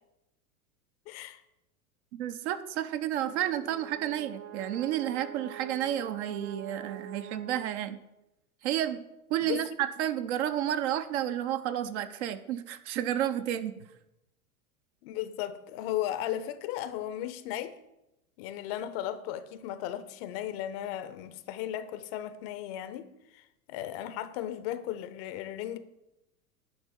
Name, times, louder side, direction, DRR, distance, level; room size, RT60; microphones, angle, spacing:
voice 1, 1.1-1.4 9.4-9.6 15.0-17.8 18.4-25.8, left 12 dB, 45° left, 0.7 m, -36 dB
voice 2, 2.1-8.0 8.6-9.0 9.3-13.8, right 11 dB, 50° right, 0.8 m, -31 dB
Brass instrument, 3.2-8.2, right 12 dB, 30° right, 0.4 m, -46 dB
10.5 x 4.4 x 7.1 m
figure-of-eight pair, 90°, 44 cm